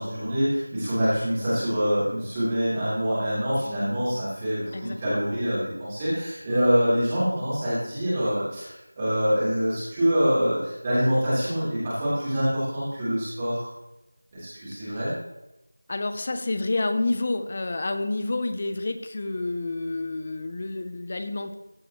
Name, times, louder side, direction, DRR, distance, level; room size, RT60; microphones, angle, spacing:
voice 1, 0.0-13.7 14.3-15.1, equal, 15° right, -12 dB, 3.7 m, -25 dB
voice 2, 4.7-5.2 14.8-15.0 15.9-21.5, left 2 dB, 30° left, 8 dB, 0.7 m, -29 dB
15.0 x 7.0 x 3.1 m, 0.93 s
figure-of-eight pair, 175°, 0 cm